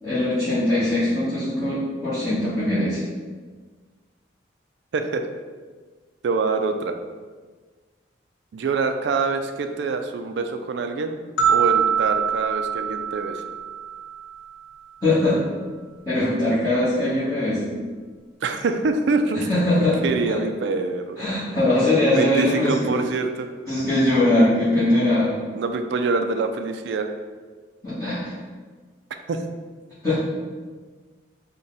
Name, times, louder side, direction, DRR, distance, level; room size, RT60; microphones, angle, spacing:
voice 1, 0.0-3.0 15.0-15.4 16.0-17.7 19.3-20.4 21.2-22.9 23.7-25.3 27.8-28.3 30.0-30.2, left 1 dB, 20° left, -14 dB, 1.0 m, -21 dB
voice 2, 6.2-7.0 8.5-11.2 11.5-13.4 18.4-19.4 20.0-21.2 22.1-23.5 25.6-27.1 29.3-29.4, right 4 dB, 65° right, 6 dB, 0.3 m, -25 dB
sound 1, 11.4-14.5, right 7 dB, 90° left, 0.7 m, -24 dB
3.8 x 2.2 x 3.9 m, 1.4 s
head